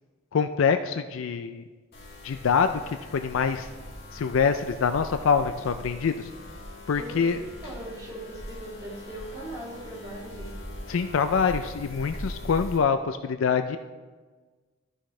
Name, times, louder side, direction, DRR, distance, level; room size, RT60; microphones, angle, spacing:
voice 1, 0.3-1.6 2.2-3.7 4.1-6.3 6.9-7.4 10.9-13.8, left 6 dB, 75° left, 9 dB, 0.4 m, -25 dB
sound 1, 1.9-12.8, left 1 dB, 50° left, 2.4 m, -41 dB
voice 2, 6.9-10.6, right 1 dB, 20° right, -6 dB, 2.9 m, -40 dB
13.0 x 6.3 x 3.2 m, 1.4 s
head